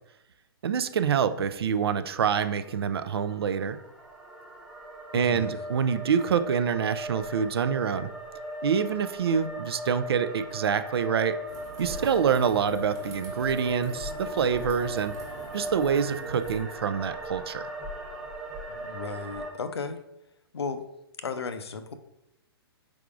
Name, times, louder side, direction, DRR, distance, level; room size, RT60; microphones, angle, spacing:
voice 1, 0.6-3.8 5.1-8.1 8.6-11.4 11.8-15.1 15.5-17.7, right 7 dB, 75° right, 12 dB, 0.4 m, -26 dB
sound 1, 2.4-19.5, equal, ahead, 0.7 m, -38 dB
voice 2, 5.1-5.5 18.7-20.0 20.5-20.8 21.2-21.9, left 4 dB, 85° left, 10 dB, 0.5 m, -35 dB
sound 2, 11.5-16.6, right 2 dB, 25° right, 1.0 m, -45 dB
4.8 x 3.5 x 2.4 m, 0.85 s
hypercardioid pair, 125°, 13 cm